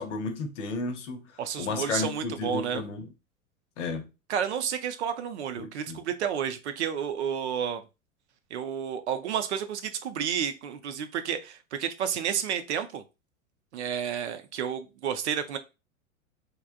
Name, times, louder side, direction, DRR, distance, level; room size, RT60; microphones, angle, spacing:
voice 1, 0.0-3.1 3.8-4.1 5.6-6.0, left 3 dB, 60° left, 0.7 m, -33 dB
voice 2, 1.4-2.8 4.3-7.8 8.5-13.0 13.7-15.6, right 8 dB, 55° right, 0.5 m, -31 dB
3.2 x 2.1 x 2.4 m
figure-of-eight pair, 95°, 41 cm